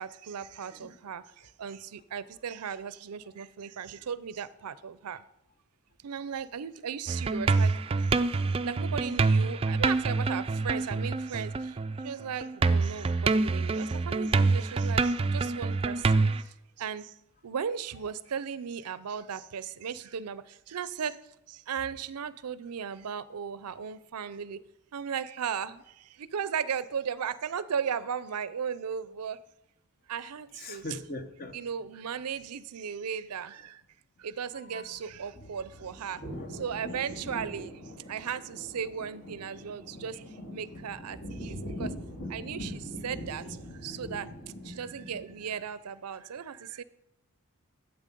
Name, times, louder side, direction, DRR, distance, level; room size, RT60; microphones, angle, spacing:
voice 1, 0.0-5.2 6.0-8.1 8.6-11.8 12.0-17.1 17.4-24.6 24.9-29.4 30.1-30.9 31.5-33.8 34.2-36.2 36.5-37.8 38.1-40.2 40.5-41.9 42.3-44.3 44.6-46.8, right 7 dB, 90° right, 0.5 m, -36 dB
voice 2, 0.7-1.0 16.4-16.5 30.5-31.6 34.5-35.5 35.8-37.3, left 2 dB, 40° left, 0.9 m, -44 dB
sound 1, 7.1-12.1 12.4-16.4, right 3 dB, 25° right, 0.3 m, -26 dB
sound 2, 35.2-45.6, equal, 65° left, 2.7 m, -42 dB
12.0 x 8.1 x 5.2 m
head